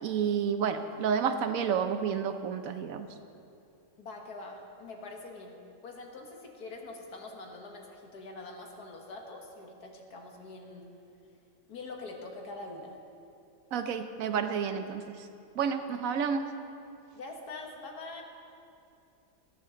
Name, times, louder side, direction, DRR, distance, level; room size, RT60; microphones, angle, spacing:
voice 1, 0.0-3.1 13.7-15.3 15.5-16.5, right 7 dB, 65° right, 8 dB, 1.0 m, -30 dB
voice 2, 4.0-10.9 11.7-13.0 17.1-18.2, left 2 dB, 85° left, 1 dB, 2.0 m, -44 dB
14.0 x 13.5 x 3.8 m, 2.6 s
omnidirectional pair, 1.6 m